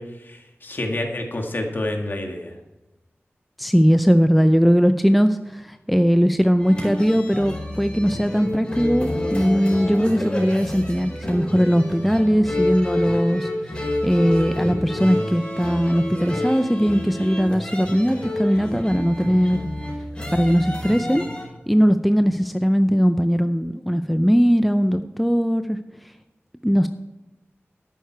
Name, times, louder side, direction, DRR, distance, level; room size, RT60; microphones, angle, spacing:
voice 1, 0.0-2.6, left 1 dB, 50° left, 2 dB, 1.8 m, -28 dB
voice 2, 3.6-19.7 20.3-21.2 21.7-25.8 26.6-26.9, equal, ahead, 9 dB, 0.5 m, -19 dB
sound 1, 6.6-21.4, left 1 dB, 20° left, 4.7 m, -28 dB
11.5 x 9.2 x 4.6 m, 1.1 s
wide cardioid pair, 80°, 5 cm